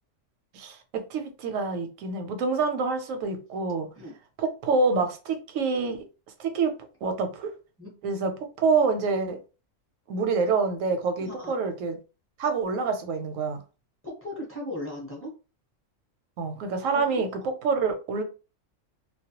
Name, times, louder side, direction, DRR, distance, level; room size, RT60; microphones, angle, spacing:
voice 1, 0.5-3.9 4.4-6.0 6.4-6.7 7.0-7.5 8.0-8.3 8.6-9.4 10.1-12.0 12.4-13.6 16.4-18.2, right 4 dB, 85° right, 1.0 m, -26 dB
voice 2, 14.0-15.3 16.9-17.2, left 1 dB, 15° left, 0.7 m, -37 dB
2.3 x 2.1 x 2.8 m
omnidirectional pair, 1.3 m